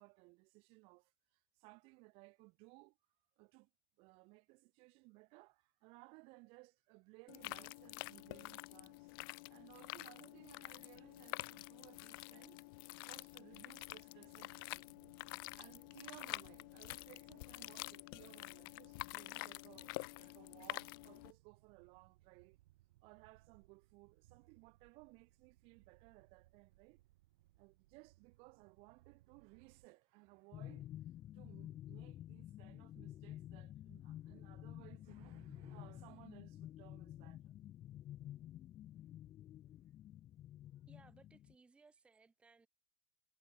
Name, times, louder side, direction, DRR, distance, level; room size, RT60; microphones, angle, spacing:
voice 1, 0.0-3.0 3.4-3.7 4.0-9.1 9.5-12.6 13.0-14.9 15.5-22.6 23.0-27.0 27.6-30.9 31.3-37.5, right 27 dB, 40° right, 1.1 m, -61 dB
sound 1, 7.3-21.3, left 25 dB, 50° left, 0.7 m, -48 dB
sound 2, 14.2-29.9, right 17 dB, 70° right, 1.0 m, -70 dB
sound 3, 30.5-41.5, left 12 dB, 20° left, 0.4 m, -51 dB
voice 2, 40.9-42.7, right 4 dB, 10° right, 0.8 m, -65 dB
supercardioid pair, 160°, 14 cm